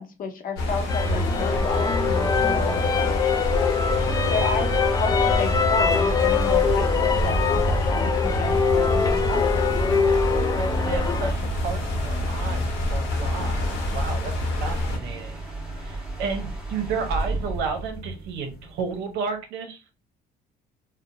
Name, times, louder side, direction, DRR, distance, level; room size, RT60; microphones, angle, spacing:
voice 1, 0.0-3.5 4.3-4.7 5.0-9.6 13.4-13.7, left 4 dB, 55° left, 5 dB, 0.7 m, -32 dB
sound 1, 0.6-15.0, left 2 dB, 85° left, 1.1 m, -28 dB
sound 2, 0.6-19.1, right 3 dB, 5° right, 1.1 m, -31 dB
sound 3, 0.9-11.3, left 6 dB, 20° left, 0.3 m, -24 dB
voice 2, 3.9-4.4 10.5-14.3 14.6-15.4 15.8-19.8, right 5 dB, 85° right, 4 dB, 0.8 m, -32 dB
2.7 x 2.1 x 2.6 m, 0.29 s
cardioid pair, 110°, 17 cm